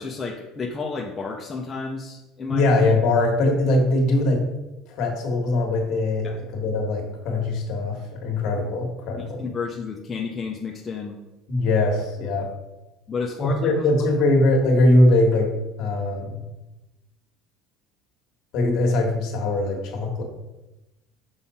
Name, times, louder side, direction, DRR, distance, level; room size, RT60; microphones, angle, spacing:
voice 1, 0.0-2.6 6.2-6.4 9.2-11.2 13.1-13.5, left 4 dB, 20° left, 0 dB, 0.6 m, -31 dB
voice 2, 2.5-4.4 4.9-9.4 11.5-12.5 13.4-15.5 15.8-16.5 18.5-20.2, left 2 dB, 55° left, 2 dB, 1.5 m, -21 dB
5.6 x 5.5 x 4.2 m, 1.0 s
cardioid pair, 145°, 0 cm